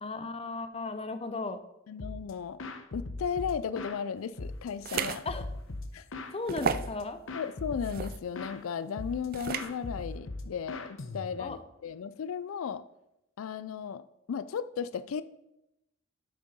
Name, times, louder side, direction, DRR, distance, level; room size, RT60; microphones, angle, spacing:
voice 1, 0.0-1.6 5.2-5.5 6.3-7.2 11.4-11.6, left 3 dB, 30° left, 10 dB, 0.6 m, -35 dB
voice 2, 1.9-2.6 2.9-5.3 5.9-6.0 7.3-12.8 13.4-14.0 14.3-15.2, left 7 dB, 80° left, 15 dB, 0.4 m, -35 dB
sound 1, 2.0-2.3 2.6-4.0 4.4-6.4 6.7-7.0 7.3-8.6 9.0-9.3 9.5-11.6, left 2 dB, 65° left, 0.9 m, -39 dB
sound 2, 4.8-5.2 5.7-5.8 6.5-6.9 7.8-8.2 9.3-9.7, right 6 dB, 45° right, 0.5 m, -32 dB
8.1 x 6.5 x 5.4 m, 0.87 s
head